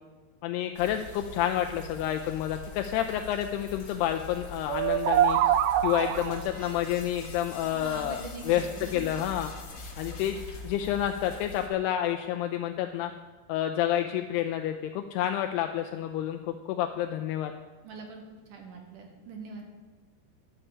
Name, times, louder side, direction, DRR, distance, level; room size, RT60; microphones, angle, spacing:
voice 1, 0.4-5.4 5.8-9.5 10.0-13.1 13.5-17.5, left 11 dB, 85° left, 5 dB, 2.4 m, -29 dB
sound 1, 0.7-11.7, left 3 dB, 35° left, 1.9 m, -44 dB
sound 2, 4.7-6.5, right 11 dB, 85° right, 2.4 m, -24 dB
sound 3, 6.3-10.7, left 4 dB, 50° left, 2.4 m, -48 dB
voice 2, 7.6-9.1 17.8-18.2 18.5-19.7, right 4 dB, 60° right, 3 dB, 2.5 m, -42 dB
12.0 x 5.6 x 8.4 m, 1.3 s
omnidirectional pair, 5.1 m